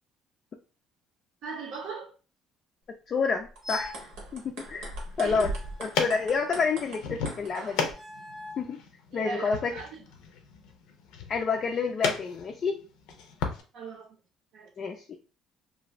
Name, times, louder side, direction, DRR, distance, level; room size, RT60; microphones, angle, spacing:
voice 1, 1.4-2.1 5.2-5.5 9.1-10.0 13.7-14.1 14.5-14.7, right 4 dB, 65° right, 0.6 m, -38 dB
voice 2, 3.1-3.9 4.3-5.5 5.8-7.9 8.6-8.8 9.1-9.7 11.3-12.8 14.8-15.1, left 5 dB, 35° left, 0.3 m, -29 dB
sound 1, 3.4-7.9, right 2 dB, 90° right, 1.0 m, -40 dB
sound 2, 3.6-4.1 5.3-6.5 7.9-8.7, left 2 dB, 15° right, 0.5 m, -43 dB
sound 3, 5.1-13.6, left 5 dB, 90° left, 0.5 m, -36 dB
2.5 x 2.4 x 2.9 m
cardioid pair, 145°, 0 cm